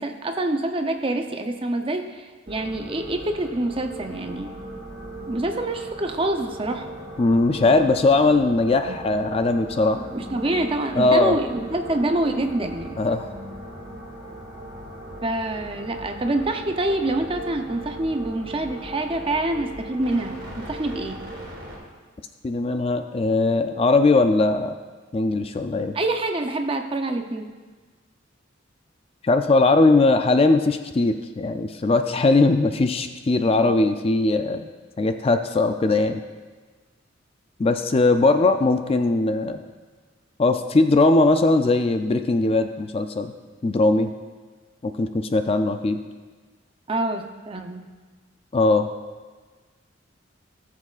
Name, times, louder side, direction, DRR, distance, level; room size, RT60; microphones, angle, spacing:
voice 1, 0.0-4.5 5.3-6.9 8.8-9.0 9.9-13.0 15.2-21.2 25.9-27.5 46.9-47.9, right 2 dB, 25° right, 5 dB, 0.6 m, -26 dB
sound 1, 2.5-21.8, right 1 dB, 50° right, 3.2 m, -38 dB
voice 2, 7.2-10.0 11.0-11.4 13.0-13.3 22.4-24.8 25.1-25.9 29.2-34.7 35.0-36.2 37.6-39.6 40.4-43.3 43.6-44.1 44.8-46.0 48.5-48.9, left 2 dB, 30° left, 7 dB, 0.4 m, -20 dB
17.5 x 7.4 x 2.4 m, 1.4 s
head